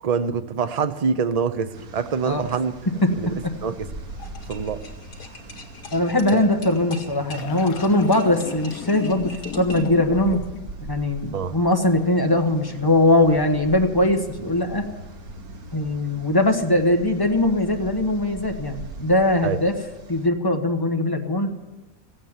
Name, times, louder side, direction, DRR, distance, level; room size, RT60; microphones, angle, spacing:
voice 1, 0.0-2.7 3.2-3.3 3.6-3.9 4.5-4.8 11.3-11.6 19.4-19.6, right 6 dB, 45° right, 10 dB, 0.5 m, -25 dB
sound 1, 1.7-20.3, right 2 dB, 85° right, 1.8 m, -41 dB
sound 2, 3.0-10.6, left 9 dB, 90° left, 1.2 m, -38 dB
sound 3, 4.2-10.0, left 2 dB, 65° left, 2.4 m, -42 dB
voice 2, 5.9-10.4 10.8-14.8 15.7-19.7 20.1-21.5, left 1 dB, 15° left, 3 dB, 1.1 m, -21 dB
15.0 x 8.9 x 7.3 m, 1.1 s
omnidirectional pair, 1.5 m